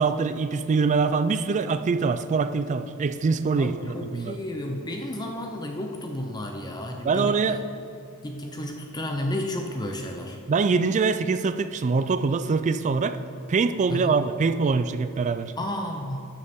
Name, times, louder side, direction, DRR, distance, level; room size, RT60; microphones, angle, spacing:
voice 1, 0.0-4.4 7.0-7.6 10.5-13.2 13.5-15.5, right 4 dB, 35° right, 11 dB, 0.3 m, -24 dB
voice 2, 3.6-7.4 8.2-10.4 13.9-14.2 15.6-16.3, left 1 dB, 20° left, 3 dB, 0.6 m, -32 dB
12.5 x 6.7 x 3.6 m, 2.5 s
head